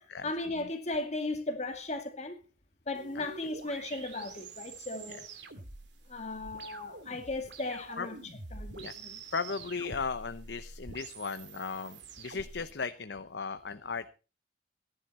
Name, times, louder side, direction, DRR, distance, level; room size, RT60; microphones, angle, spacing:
voice 1, 0.2-2.4 2.9-5.3 6.1-8.2 8.5-9.2, left 2 dB, 40° left, 2.2 m, -36 dB
sound 1, 3.0-12.7, right 3 dB, 85° right, 2.7 m, -47 dB
voice 2, 9.3-14.1, left 5 dB, 75° left, 0.8 m, -36 dB
18.0 x 11.0 x 4.2 m
head